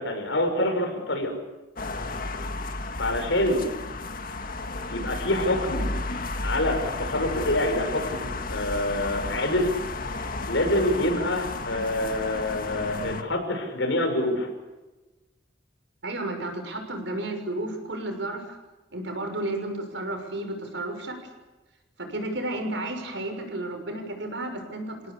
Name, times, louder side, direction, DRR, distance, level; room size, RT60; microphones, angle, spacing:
voice 1, 0.0-1.3 3.0-3.7 4.9-5.9 6.4-9.7 10.5-14.5, left 1 dB, 90° left, 4 dB, 6.3 m, -26 dB
sound 1, 1.8-13.2, left 2 dB, 50° left, 1.8 m, -33 dB
voice 2, 16.0-18.6 18.9-21.2 22.0-24.9, right 1 dB, 75° right, 5 dB, 6.5 m, -32 dB
28.5 x 17.5 x 8.4 m, 1.1 s
head